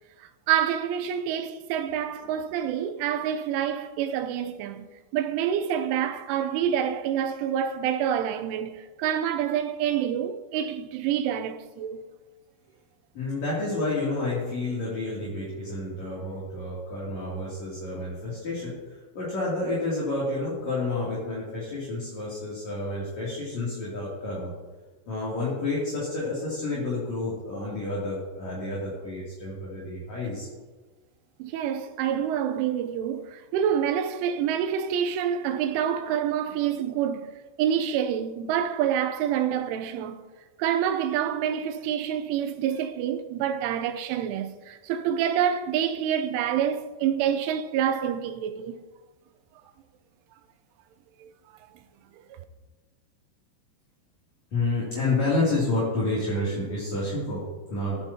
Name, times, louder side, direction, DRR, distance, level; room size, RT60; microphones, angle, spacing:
voice 1, 0.2-4.9 5.1-12.0 31.4-37.3 37.6-40.2 40.6-48.8 51.2-51.3, right 9 dB, 90° right, 3.3 m, -27 dB
voice 2, 13.1-24.5 25.1-30.5 54.5-58.0, left 2 dB, 40° left, 3.6 m, -29 dB
16.5 x 13.0 x 2.9 m
omnidirectional pair, 5.4 m